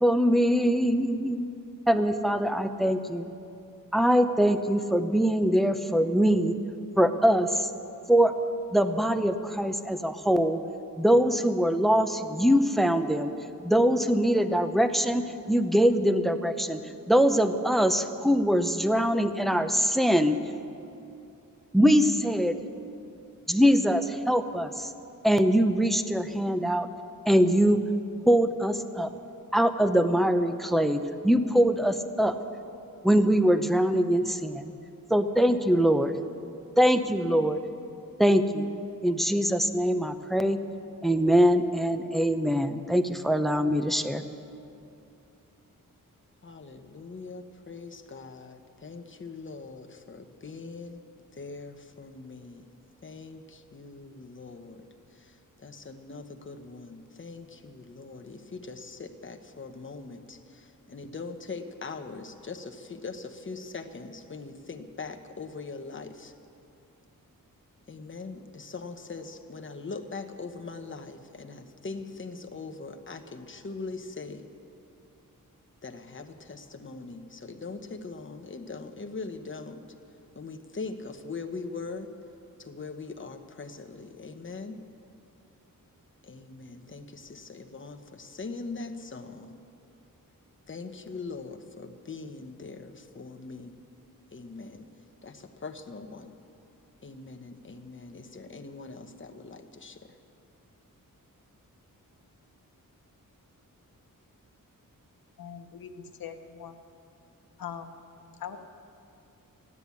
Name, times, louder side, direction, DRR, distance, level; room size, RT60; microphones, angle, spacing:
voice 1, 0.0-1.5 1.9-3.3 3.9-6.5 7.0-7.7 8.1-8.3 8.7-10.6 11.0-13.4 13.6-16.8 17.1-20.4 21.7-22.5 23.5-24.9 25.2-26.9 27.3-27.8 28.3-29.1 29.5-32.4 33.0-34.7 35.1-36.2 36.8-37.6 38.2-38.7 39.0-40.6 41.0-44.2, equal, ahead, 9 dB, 0.6 m, -23 dB
voice 2, 46.4-51.0 51.4-52.7 53.0-54.9 55.1-66.3 67.9-74.4 75.8-79.8 80.3-82.1 82.6-84.8 86.2-89.6 90.7-93.8 94.3-94.9 95.2-96.3 97.0-100.1, left 4 dB, 35° left, 4 dB, 1.0 m, -41 dB
voice 3, 105.4-106.8 107.6-107.9 108.4-108.6, left 8 dB, 90° left, 6 dB, 1.0 m, -41 dB
15.0 x 9.8 x 8.4 m, 2.6 s
wide cardioid pair, 110°, 34 cm